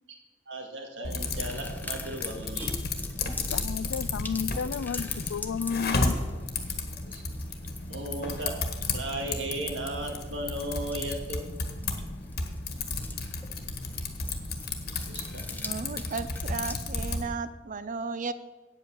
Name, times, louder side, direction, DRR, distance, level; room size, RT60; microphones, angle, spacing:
voice 1, 0.5-2.9 7.1-7.2 7.9-8.6 8.9-11.4 15.1-15.5, right 1 dB, 75° right, 2 dB, 2.1 m, -36 dB
Typing, 1.0-17.3, left 3 dB, 55° left, 1.4 m, -33 dB
sound 1, 1.2-16.8, left 2 dB, 10° left, 0.8 m, -44 dB
voice 2, 3.5-6.2, left 6 dB, 90° left, 20 dB, 0.4 m, -32 dB
voice 3, 15.6-18.3, right 4 dB, 45° right, 14 dB, 0.6 m, -34 dB
8.9 x 8.2 x 6.9 m, 1.2 s
head